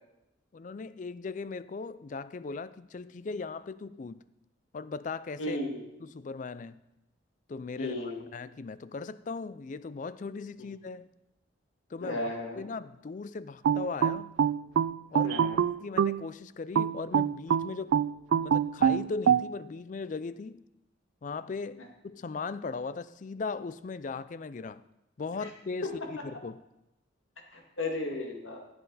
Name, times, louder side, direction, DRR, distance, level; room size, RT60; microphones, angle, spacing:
voice 1, 0.5-4.2 4.7-5.6 6.0-6.8 7.5-11.1 11.9-12.2 12.6-14.3 15.1-15.4 15.8-18.0 18.4-20.6 21.2-24.8 25.2-26.6, left 4 dB, 40° left, 0.3 m, -38 dB
voice 2, 5.4-5.8 7.8-8.2 12.0-12.6 15.2-15.6 21.8-21.9 25.4-25.5 25.8-25.9 27.5-28.6, left 2 dB, 85° left, 2.1 m, -34 dB
sound 1, 13.6-16.2 16.8-19.5, right 8 dB, 75° right, 0.3 m, -25 dB
15.0 x 7.9 x 4.0 m
head